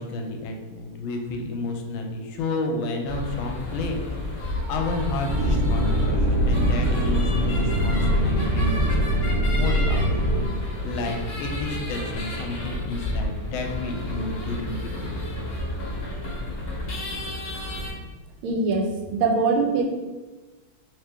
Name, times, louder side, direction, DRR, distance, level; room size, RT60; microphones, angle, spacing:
voice 1, 0.0-10.4 10.8-15.1, left 3 dB, 85° left, 3 dB, 1.4 m, -31 dB
sound 1, 3.0-17.9, left 1 dB, 50° left, 0.8 m, -31 dB
sound 2, 5.3-10.5, equal, 65° right, 1.0 m, -22 dB
voice 2, 18.4-19.8, right 4 dB, 85° right, 2 dB, 1.4 m, -23 dB
3.3 x 2.9 x 3.4 m, 1.3 s
omnidirectional pair, 2.2 m